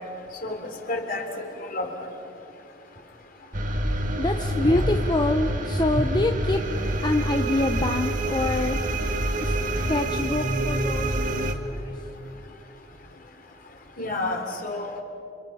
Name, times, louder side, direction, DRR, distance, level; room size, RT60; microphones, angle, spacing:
voice 1, 0.9-2.1 4.6-4.8 14.0-15.0, left 2 dB, 50° left, 3 dB, 3.3 m, -29 dB
sound 1, 3.5-11.5, right 1 dB, 45° right, 1.7 m, -27 dB
voice 2, 4.2-6.6 7.0-8.8 9.4-9.6 9.9-11.1 11.3-11.9, left 2 dB, 25° left, 5 dB, 0.8 m, -26 dB
29.5 x 27.5 x 5.6 m, 2.8 s
head